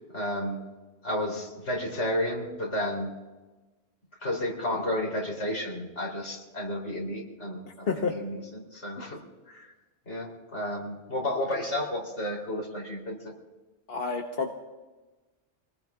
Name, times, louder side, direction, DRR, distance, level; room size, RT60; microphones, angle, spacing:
voice 1, 0.1-0.6 1.0-3.1 4.2-9.7 10.1-13.3, left 1 dB, 75° left, -1 dB, 3.7 m, -32 dB
voice 2, 7.9-8.2 13.9-14.5, left 4 dB, 55° left, 2 dB, 1.2 m, -29 dB
26.0 x 19.5 x 2.4 m, 1.2 s
omnidirectional pair, 1.2 m